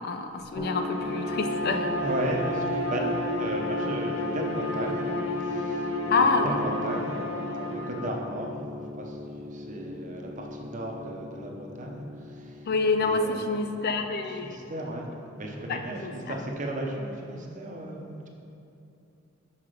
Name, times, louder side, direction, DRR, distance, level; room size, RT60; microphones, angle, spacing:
voice 1, 0.0-1.9 6.1-6.6 12.7-14.6 15.7-16.4, left 3 dB, 50° left, 6 dB, 0.4 m, -27 dB
sound 1, 0.6-16.5, left 2 dB, 20° right, 0.4 m, -38 dB
Bowed string instrument, 0.7-8.2, left 1 dB, 80° left, 0.7 m, -32 dB
voice 2, 2.0-3.0 3.4-5.1 5.4-6.1 6.4-8.5 9.0-12.7 13.0-13.3 14.4-18.3, right 1 dB, 40° right, 1 dB, 0.8 m, -35 dB
5.8 x 5.7 x 5.0 m, 2.7 s
head